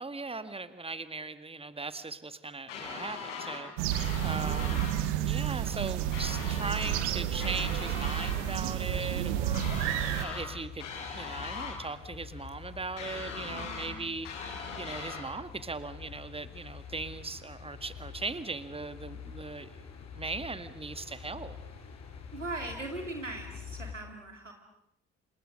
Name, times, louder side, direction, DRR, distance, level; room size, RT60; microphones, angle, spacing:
voice 1, 0.0-4.9 5.3-9.9 10.2-10.9 11.1-14.5 14.8-19.8 20.1-21.6, right 3 dB, 15° right, 13 dB, 1.9 m, -39 dB
sound 1, 2.7-3.6 3.9-5.0 6.1-7.1 7.4-8.4 9.5-10.5 10.8-11.8 13.0-13.9 14.2-15.2, left 5 dB, 75° left, 4.9 m, -40 dB
sound 2, 3.8-10.3, right 12 dB, 70° right, 1.5 m, -31 dB
voice 2, 4.4-5.2 13.5-14.0 22.3-24.5, right 2 dB, 90° right, 4 dB, 2.9 m, -41 dB
sound 3, 4.8-23.9, left 6 dB, 45° left, 5.0 m, -47 dB
29.0 x 28.0 x 6.6 m, 0.78 s
figure-of-eight pair, 40°, 36 cm